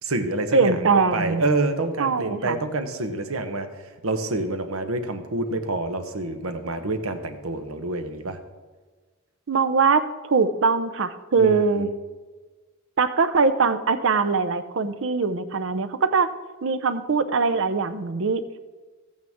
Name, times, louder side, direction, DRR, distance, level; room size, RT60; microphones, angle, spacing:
voice 1, 0.0-8.4 11.4-11.9, right 2 dB, 85° right, 8 dB, 1.0 m, -27 dB
voice 2, 0.5-1.4 2.0-2.6 9.5-11.9 13.0-16.3 16.6-18.6, right 4 dB, 65° right, 11 dB, 0.6 m, -22 dB
14.0 x 8.8 x 3.6 m, 1.4 s
head